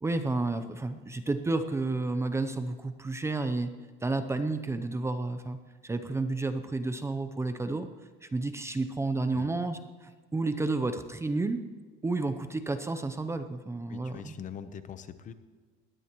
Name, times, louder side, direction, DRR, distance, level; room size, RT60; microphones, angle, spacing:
voice 1, 0.0-3.7 4.0-7.9 8.2-11.6 12.0-14.3, right 3 dB, 15° right, 9 dB, 0.6 m, -31 dB
voice 2, 13.9-15.3, left 8 dB, 35° left, 11 dB, 0.8 m, -43 dB
20.0 x 16.5 x 3.1 m, 1.4 s
cardioid pair, 145°, 21 cm